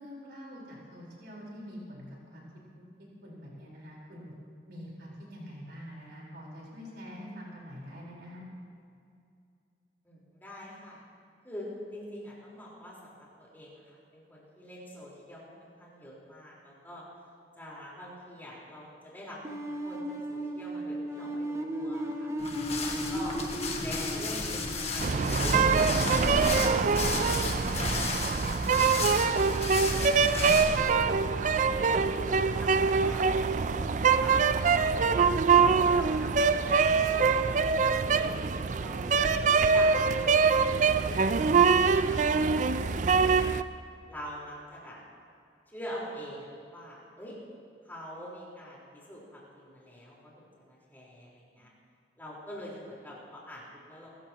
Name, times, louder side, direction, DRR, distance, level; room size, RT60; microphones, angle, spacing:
voice 1, 0.0-2.5 3.2-4.3 4.7-8.4 41.3-41.6, equal, 65° right, -4 dB, 4.3 m, -45 dB
voice 2, 10.0-11.0 11.4-13.8 14.1-17.0 17.5-20.0 20.3-22.3 22.8-23.4 23.8-26.4 27.2-30.0 30.3-30.7 31.2-33.9 34.2-34.9 35.5-38.3 38.8-39.3 39.5-41.3 41.6-43.5 44.1-45.0 45.7-47.4 47.8-51.7 52.2-54.2, equal, 10° left, -6 dB, 4.2 m, -45 dB
sound 1, 19.4-26.3, right 1 dB, 15° right, 0.8 m, -36 dB
sound 2, 22.4-30.9, left 3 dB, 35° left, 1.5 m, -33 dB
sound 3, 25.0-43.6, right 5 dB, 45° right, 0.4 m, -24 dB
25.0 x 14.0 x 3.0 m, 2.4 s
head